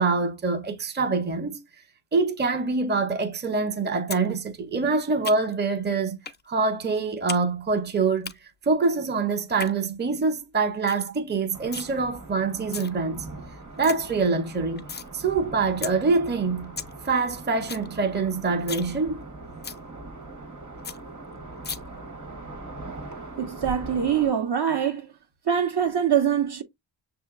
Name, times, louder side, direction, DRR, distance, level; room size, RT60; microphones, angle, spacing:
voice 1, 0.0-1.6 2.1-6.2 6.5-8.3 8.6-13.3 13.8-14.9 15.1-16.7 17.0-19.3, right 4 dB, 20° right, 0.6 m, -25 dB
sound 1, 4.1-4.3 4.5-5.7 6.2-6.4 6.7-7.4 7.7-8.3 9.4-9.7 10.2-10.3 10.6-10.7 10.9-11.1 11.3-11.9 12.5-12.9 13.3-13.4 13.6-13.9 14.3-15.1 15.4-15.5 15.8-15.9 16.3-16.4 16.6-16.9 17.2-17.3 17.5-17.9 18.2-18.3 18.6-18.9 19.2-19.3 19.6-19.8 20.2-20.3 20.5-20.6 20.8-21.0 21.6-21.8, left 5 dB, 25° left, 0.3 m, -35 dB
sound 2, 11.5-24.3, right 2 dB, 35° right, 1.3 m, -41 dB
voice 2, 23.4-25.1 25.5-26.6, right 8 dB, 55° right, 0.7 m, -24 dB
6.3 x 2.8 x 2.4 m
wide cardioid pair, 130°, 48 cm